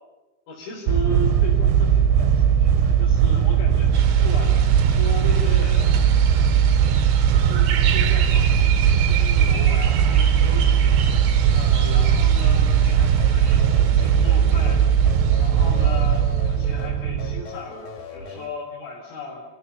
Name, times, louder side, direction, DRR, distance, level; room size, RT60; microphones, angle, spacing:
voice 1, 0.5-6.3 6.7-6.8 7.3-14.9 15.4-19.4, left 2 dB, 80° left, -5 dB, 6.6 m, -36 dB
sound 1, 0.9-17.4, right 8 dB, 75° right, 3.0 m, -18 dB
sound 2, 3.9-16.5, right 8 dB, 60° right, 2.2 m, -33 dB
sound 3, 13.2-18.5, left 3 dB, 50° left, 2.9 m, -39 dB
28.0 x 16.5 x 8.6 m, 1.1 s
omnidirectional pair, 5.5 m